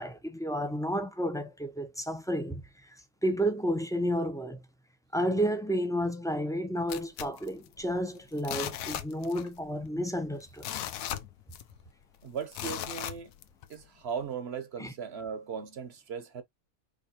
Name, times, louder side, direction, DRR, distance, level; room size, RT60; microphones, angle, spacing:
voice 1, 0.0-2.6 3.2-4.6 5.1-10.7 14.8-14.9, equal, 5° left, 0.6 m, -31 dB
sound 1, 6.9-8.0 8.4-9.6 9.9-10.0 10.4-11.9 12.5-13.7 14.2-14.3, left 11 dB, 75° left, 1.0 m, -37 dB
voice 2, 12.2-13.3 13.7-16.4, right 6 dB, 50° right, 1.1 m, -37 dB
5.0 x 3.1 x 2.9 m
omnidirectional pair, 1.5 m